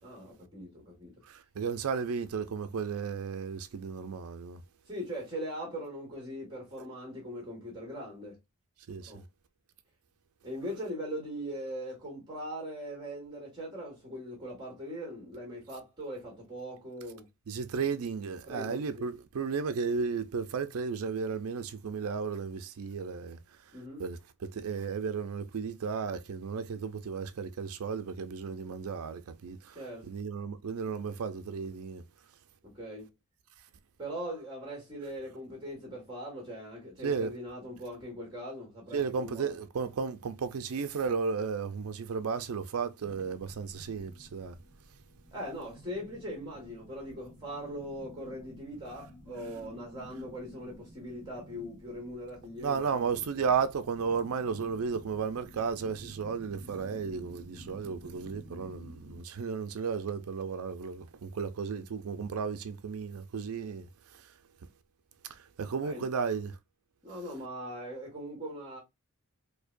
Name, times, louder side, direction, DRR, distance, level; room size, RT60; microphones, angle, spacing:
voice 1, 0.0-1.1 4.9-8.4 9.0-9.2 10.4-17.3 18.5-19.1 23.7-24.0 29.7-30.1 32.6-33.1 34.0-39.5 45.3-53.5 65.8-66.0 67.0-68.8, equal, 20° right, 1.7 m, -40 dB
voice 2, 1.2-4.6 8.9-9.2 17.5-23.4 24.0-29.8 30.1-32.0 37.0-37.3 38.9-44.6 52.6-63.9 64.1-64.3 65.3-66.6, right 5 dB, 75° right, 0.4 m, -34 dB
sound 1, 43.0-59.2, equal, 40° right, 1.9 m, -52 dB
4.6 x 2.2 x 2.5 m
head